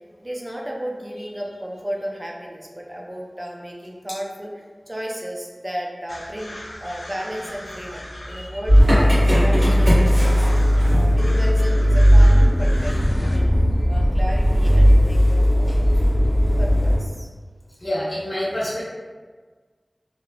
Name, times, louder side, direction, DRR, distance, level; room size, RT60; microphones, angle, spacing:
voice 1, 0.2-13.5 13.9-15.8 16.6-17.3, equal, 25° right, -1 dB, 0.4 m, -34 dB
sound 1, 6.1-13.4, left 1 dB, 80° left, 0.3 m, -38 dB
Motor vehicle (road) / Engine starting, 8.7-17.0, equal, 90° right, 1.0 m, -16 dB
voice 2, 17.8-18.8, equal, 40° left, -8 dB, 0.8 m, -27 dB
2.9 x 2.0 x 2.6 m, 1.4 s
wide cardioid pair, 55°, 0 cm